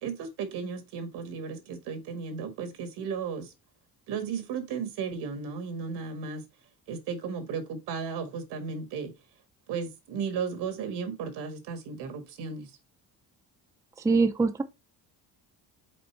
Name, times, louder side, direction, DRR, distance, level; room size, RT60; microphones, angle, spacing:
voice 1, 0.0-3.5 4.1-6.4 6.9-9.1 9.7-12.7, right 6 dB, 80° right, 1.8 m, -35 dB
voice 2, 14.0-14.6, right 4 dB, 10° right, 0.5 m, -23 dB
5.2 x 4.1 x 4.5 m
cardioid pair, 135°, 39 cm